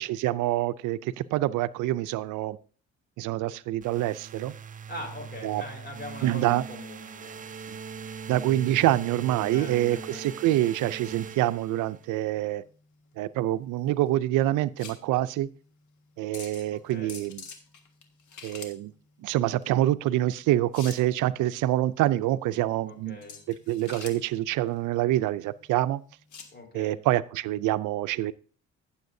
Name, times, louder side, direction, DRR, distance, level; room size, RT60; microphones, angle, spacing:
voice 1, 0.0-2.6 3.2-4.5 5.4-5.6 6.2-6.6 8.3-12.6 13.2-15.5 16.2-17.4 18.4-18.9 19.2-23.2 23.7-26.0 26.7-28.3, right 14 dB, 90° right, 15 dB, 0.5 m, -26 dB
sound 1, 3.8-12.1, right 6 dB, 25° right, 0.4 m, -41 dB
voice 2, 4.9-7.4 9.5-10.3 16.7-17.2 22.9-23.4 26.5-27.0, left 1 dB, 35° left, 2 dB, 4.1 m, -42 dB
sound 2, 11.9-26.6, left 6 dB, 75° left, 1.7 m, -48 dB
15.5 x 7.1 x 2.7 m, 0.41 s
cardioid pair, 90°, 30 cm